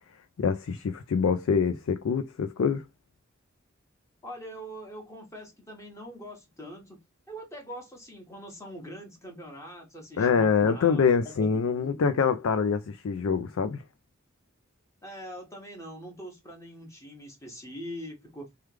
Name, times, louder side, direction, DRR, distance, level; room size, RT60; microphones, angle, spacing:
voice 1, 0.4-2.8 10.2-13.8, left 6 dB, 80° left, 0.4 m, -25 dB
voice 2, 4.2-7.0 7.3-12.2 15.0-18.5, equal, 15° left, 1.1 m, -43 dB
3.2 x 2.3 x 3.2 m
head